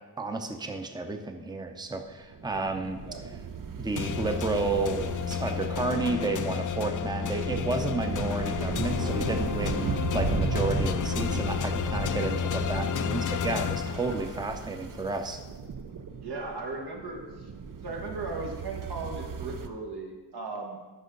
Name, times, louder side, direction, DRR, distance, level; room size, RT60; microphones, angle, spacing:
voice 1, 0.2-3.0 3.8-15.4, right 3 dB, 10° right, 5 dB, 0.7 m, -31 dB
sound 1, 2.1-19.7, right 5 dB, 55° right, 0.7 m, -36 dB
sound 2, 4.0-14.6, left 8 dB, 50° left, 0.5 m, -31 dB
voice 2, 16.2-17.5 17.8-20.8, right 3 dB, 70° right, 1 dB, 1.7 m, -37 dB
13.5 x 5.5 x 3.9 m, 1.2 s
wide cardioid pair, 90°, 40 cm